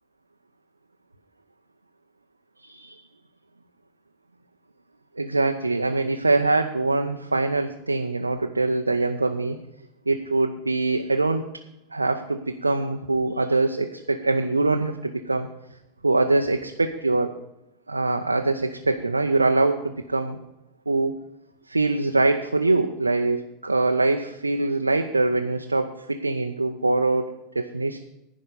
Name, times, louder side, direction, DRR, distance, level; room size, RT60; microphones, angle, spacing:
voice 1, 2.6-3.0 5.2-9.6 10.1-11.4 11.9-15.5 16.0-17.4 17.9-20.4 20.9-21.1 21.7-28.0, right 2 dB, 85° right, 4 dB, 0.7 m, -23 dB
15.0 x 5.1 x 6.8 m, 0.86 s
figure-of-eight pair, 85°, 0 cm